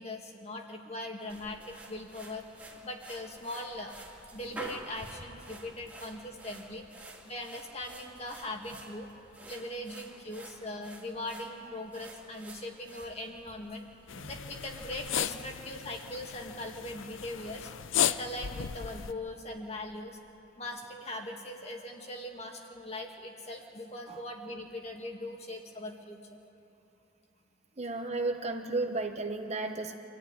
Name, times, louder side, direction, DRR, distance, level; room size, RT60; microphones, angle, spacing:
voice 1, 0.0-2.4 2.8-4.0 4.3-6.9 7.2-9.1 9.5-13.9 14.1-17.7 18.0-20.2 20.6-26.4, left 1 dB, 35° left, 2 dB, 2.1 m, -40 dB
Sweeping the floor, 1.3-15.1, right 1 dB, 10° right, 2.5 m, -50 dB
sound 1, 14.1-19.1, left 9 dB, 85° left, 0.6 m, -35 dB
voice 2, 27.8-29.9, right 3 dB, 35° right, 5 dB, 1.1 m, -33 dB
25.5 x 14.5 x 9.9 m, 3.0 s
head